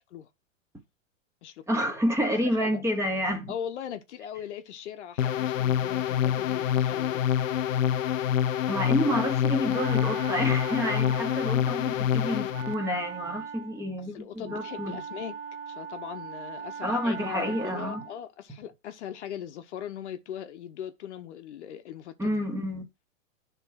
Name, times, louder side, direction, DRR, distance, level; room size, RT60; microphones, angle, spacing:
voice 1, 1.7-3.5 8.7-15.0 16.8-18.0 22.2-22.8, equal, 5° right, 1.7 m, -29 dB
voice 2, 2.4-2.8 3.5-7.2 14.1-15.4 15.7-22.3, left 9 dB, 60° left, 1.1 m, -39 dB
sound 1, 5.2-12.7, left 9 dB, 75° left, 0.7 m, -26 dB
Wind instrument woodwind instrument, 9.1-18.2, right 6 dB, 55° right, 0.9 m, -41 dB
9.5 x 3.8 x 5.7 m
hypercardioid pair, 120°, 39 cm